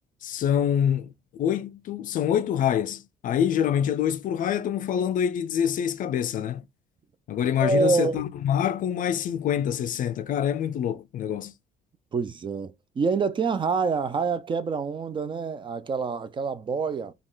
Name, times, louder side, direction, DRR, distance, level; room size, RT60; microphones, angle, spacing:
voice 1, 0.2-6.6 7.3-11.5, left 9 dB, 55° left, 0.4 m, -26 dB
voice 2, 7.6-8.2 12.1-17.1, right 4 dB, 30° right, 0.5 m, -26 dB
5.1 x 2.4 x 3.7 m
cardioid pair, 110°, 17 cm